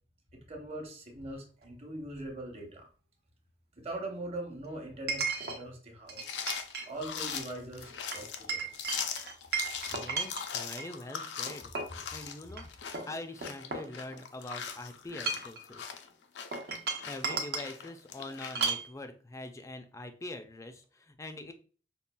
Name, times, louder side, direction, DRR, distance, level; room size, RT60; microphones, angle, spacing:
voice 1, 0.3-2.9 3.8-6.4 6.9-8.6, right 1 dB, 35° right, 2 dB, 0.9 m, -41 dB
Chink clink, 1.6-1.7 5.1-5.6 6.1-6.9 7.2-7.4 8.1-10.9 11.5-12.0 12.5-12.6 12.9-14.4 15.1-15.6 16.5-17.7 18.5-18.9, right 4 dB, 60° right, 0.7 m, -35 dB
sound 1, 6.2-18.7, left 7 dB, 75° left, 0.4 m, -40 dB
voice 2, 9.9-11.7 12.0-12.7 13.0-15.9 17.1-21.5, left 2 dB, 15° left, 7 dB, 0.4 m, -43 dB
5.2 x 2.3 x 2.2 m, 0.39 s
head